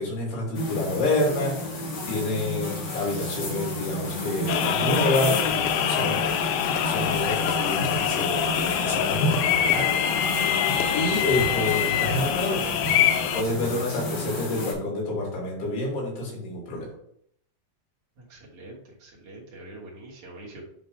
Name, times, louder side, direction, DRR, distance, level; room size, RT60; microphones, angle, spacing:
voice 1, 0.0-6.2 6.8-9.9 10.9-12.6 13.3-16.9, left 2 dB, 70° left, -3 dB, 4.4 m, -28 dB
sound 1, 0.5-14.7, left 1 dB, 50° left, 2.4 m, -31 dB
sound 2, 4.5-13.4, left 10 dB, 85° left, 2.8 m, -25 dB
voice 2, 18.3-20.6, right 2 dB, 55° right, -4 dB, 1.7 m, -44 dB
9.4 x 3.4 x 4.6 m, 0.69 s
omnidirectional pair, 4.9 m